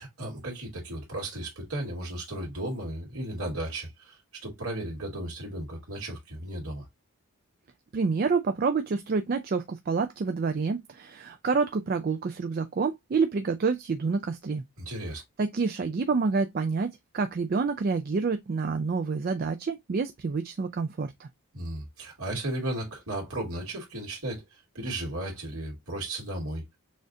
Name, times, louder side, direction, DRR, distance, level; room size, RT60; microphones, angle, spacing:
voice 1, 0.0-6.9 14.8-15.2 21.5-26.6, right 1 dB, 75° right, 2.1 m, -35 dB
voice 2, 7.9-14.6 15.4-21.3, right 4 dB, 40° right, 0.3 m, -28 dB
6.3 x 2.4 x 2.6 m
head